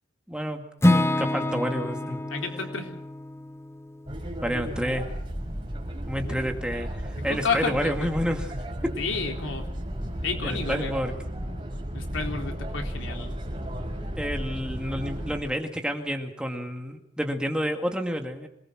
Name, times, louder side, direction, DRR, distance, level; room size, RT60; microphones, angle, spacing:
voice 1, 0.3-2.2 4.4-5.1 6.1-8.5 10.4-11.1 14.2-18.5, equal, 5° right, 3 dB, 2.1 m, -29 dB
Acoustic guitar / Strum, 0.8-4.9, left 1 dB, 15° left, 0.9 m, -27 dB
voice 2, 2.0-3.0 6.2-6.4 7.2-8.1 9.0-9.7 10.2-10.9 11.9-13.3, left 4 dB, 85° left, 3 dB, 3.8 m, -31 dB
sound 1, 4.1-15.4, equal, 25° right, 5.3 m, -34 dB
26.0 x 19.5 x 6.2 m, 0.72 s
head